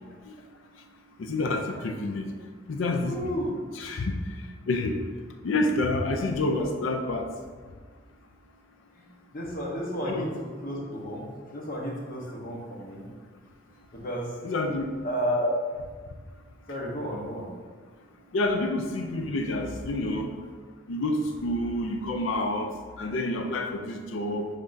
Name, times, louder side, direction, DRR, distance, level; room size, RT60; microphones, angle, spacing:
voice 1, 1.2-2.3 2.7-3.2 3.7-4.1 4.7-5.0 5.4-7.3 10.1-10.3 14.4-14.9 18.3-20.3 20.9-22.7 23.0-24.5, left 2 dB, 90° left, 5 dB, 0.4 m, -28 dB
voice 2, 3.0-3.5 9.0-9.1 9.3-13.0 13.9-14.3 15.0-15.5 16.7-17.5, equal, 50° left, -3 dB, 1.0 m, -32 dB
5.6 x 3.6 x 2.6 m, 1.5 s
head